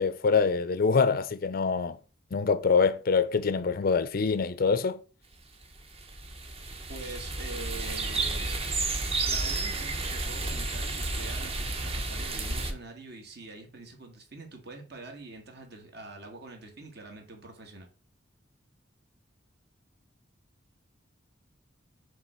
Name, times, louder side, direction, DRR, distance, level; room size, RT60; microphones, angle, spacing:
voice 1, 0.0-2.0 2.3-5.0, left 5 dB, 50° left, 0.5 m, -25 dB
sound 1, 5.6-12.7, right 3 dB, 30° right, 0.9 m, -32 dB
voice 2, 6.9-8.6 9.2-17.9, right 3 dB, 60° right, 1.6 m, -45 dB
7.3 x 3.3 x 4.4 m
head